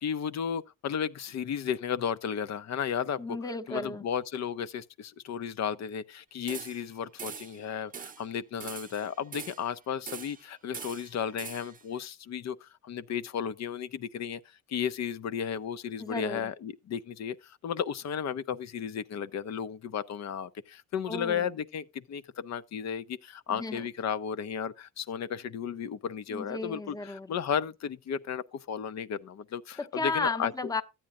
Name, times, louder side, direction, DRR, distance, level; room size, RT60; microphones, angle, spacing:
voice 1, 0.0-3.2 3.7-14.4 14.7-30.5, left 8 dB, 60° left, 0.8 m, -34 dB
voice 2, 3.2-4.0 16.0-16.5 21.1-21.5 23.5-23.9 26.3-27.3 29.8-30.8, left 3 dB, 10° left, 0.9 m, -34 dB
sound 1, 6.5-6.9 7.2-7.6 7.9-8.3 8.6-9.7 10.1-10.5 10.7-11.8, right 6 dB, 30° right, 0.6 m, -42 dB
14.0 x 8.8 x 2.5 m
cardioid pair, 90°, 30 cm